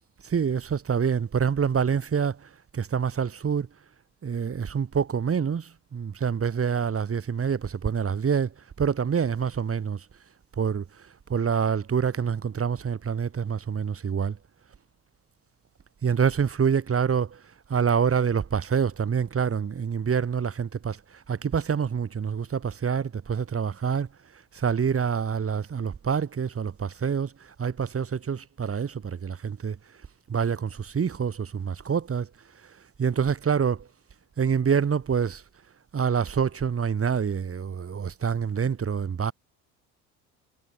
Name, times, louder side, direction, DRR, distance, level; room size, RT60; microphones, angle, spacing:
voice 1, 0.2-2.4 2.7-3.7 4.2-8.5 8.8-10.0 10.6-10.8 11.3-14.4 16.0-17.4 17.7-21.0 21.3-24.1 24.5-27.3 27.6-29.8 30.3-32.3 33.0-33.9 34.4-35.4 35.9-39.3, right 6 dB, 30° right, 4.9 m, -26 dB
figure-of-eight pair, 55°, 44 cm